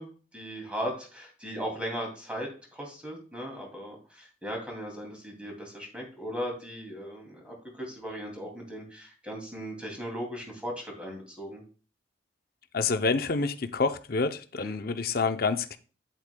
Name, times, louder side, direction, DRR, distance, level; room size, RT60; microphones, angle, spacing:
voice 1, 0.0-11.6 14.6-14.8, equal, 5° right, 0 dB, 2.5 m, -38 dB
voice 2, 12.7-15.8, left 4 dB, 50° left, 9 dB, 0.6 m, -28 dB
9.0 x 8.1 x 2.2 m, 0.37 s
head